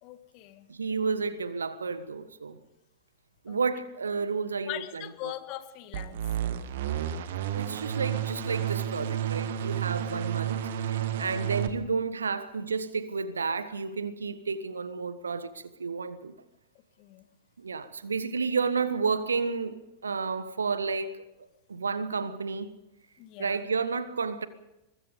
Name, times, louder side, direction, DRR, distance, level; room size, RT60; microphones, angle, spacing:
voice 1, 0.0-0.7 3.5-3.6 4.6-6.2 11.2-11.4 17.0-17.3 23.2-23.6, left 16 dB, 40° left, 1.7 m, -41 dB
voice 2, 0.7-2.6 3.4-5.3 7.5-16.3 17.6-22.7 23.4-24.5, right 5 dB, 75° right, 1.4 m, -31 dB
sound 1, 5.9-11.7, right 10 dB, 55° right, 1.6 m, -31 dB
23.5 x 21.0 x 5.2 m
figure-of-eight pair, 90°, 0 cm